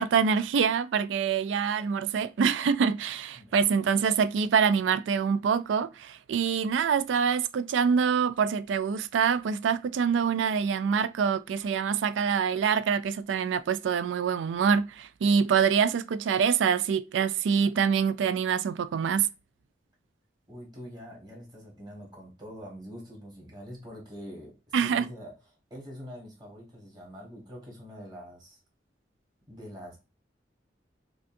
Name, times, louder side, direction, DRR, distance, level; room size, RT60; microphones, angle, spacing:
voice 1, 0.0-19.3 24.7-25.1, right 6 dB, 90° right, 0.3 m, -25 dB
voice 2, 20.5-25.3 25.7-28.6 29.5-30.0, equal, 25° right, 1.5 m, -44 dB
5.1 x 2.3 x 2.6 m
head